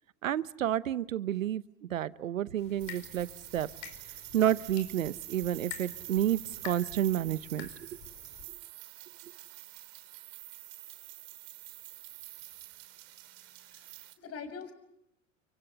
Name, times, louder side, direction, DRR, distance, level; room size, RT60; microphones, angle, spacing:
voice 1, 0.2-1.6 1.9-3.3 3.5-3.7 4.3-7.7, right 11 dB, 90° right, 17 dB, 1.0 m, -30 dB
sound 1, 2.6-8.5, left 10 dB, 60° left, 5.1 m, -49 dB
sound 2, 2.8-14.1, right 18 dB, 65° right, 3.5 m, -47 dB
voice 2, 13.4-14.7, left 5 dB, 40° left, 10 dB, 6.8 m, -45 dB
30.0 x 24.5 x 6.9 m, 0.82 s
hypercardioid pair, 90°, 39 cm